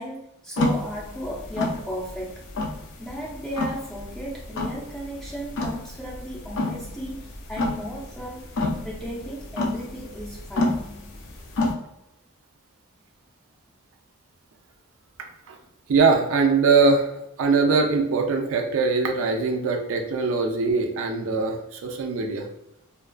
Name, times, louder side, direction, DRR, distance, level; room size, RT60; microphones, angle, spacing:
voice 1, 0.0-2.4 3.0-8.5 8.8-10.8, equal, 5° left, -4 dB, 0.5 m, -35 dB
sound 1, 0.6-11.7, left 2 dB, 55° left, 0.4 m, -29 dB
voice 2, 15.9-17.1 17.4-22.5, right 4 dB, 60° right, 3 dB, 0.4 m, -22 dB
2.3 x 2.2 x 2.4 m, 0.85 s
head